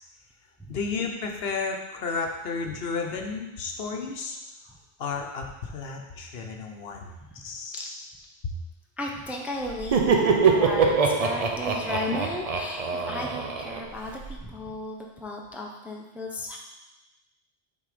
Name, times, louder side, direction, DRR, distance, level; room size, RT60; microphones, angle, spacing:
voice 1, 0.7-4.4 5.0-7.9, left 4 dB, 75° left, 3 dB, 1.0 m, -32 dB
voice 2, 9.0-16.6, left 1 dB, ahead, 0 dB, 0.6 m, -35 dB
Laughter, 9.7-14.3, right 5 dB, 45° right, 0.6 m, -24 dB
7.1 x 4.0 x 5.0 m, 1.0 s
omnidirectional pair, 1.0 m